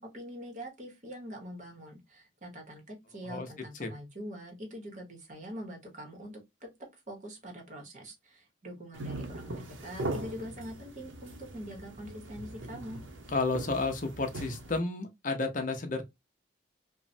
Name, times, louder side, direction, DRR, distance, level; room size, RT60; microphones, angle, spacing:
voice 1, 0.0-6.7 7.1-9.5 9.8-13.0, equal, 40° right, 0.8 m, -44 dB
sound 1, 8.9-14.8, right 2 dB, 80° right, 0.6 m, -40 dB
voice 2, 13.3-16.0, left 3 dB, 40° left, 0.6 m, -31 dB
3.0 x 2.0 x 2.6 m
head